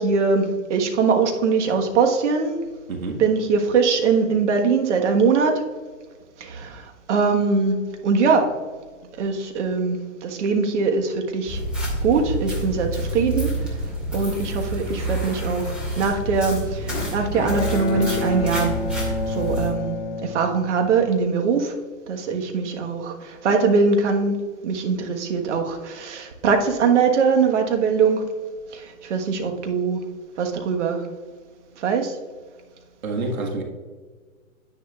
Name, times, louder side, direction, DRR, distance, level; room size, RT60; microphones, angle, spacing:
voice 1, 0.0-2.6 3.2-5.6 6.4-8.5 9.2-11.6 12.0-13.8 14.1-21.7 22.1-28.2 28.7-30.0 30.4-31.0 31.8-32.1, right 5 dB, 55° right, 4 dB, 1.5 m, -22 dB
voice 2, 2.9-3.2 33.0-33.6, right 2 dB, 80° right, 1 dB, 1.8 m, -27 dB
sound 1, 11.5-19.7, right 1 dB, ahead, 2.3 m, -28 dB
Bowed string instrument, 16.9-21.1, left 4 dB, 55° left, 1.6 m, -29 dB
9.9 x 9.9 x 2.4 m, 1.4 s
hypercardioid pair, 140°, 41 cm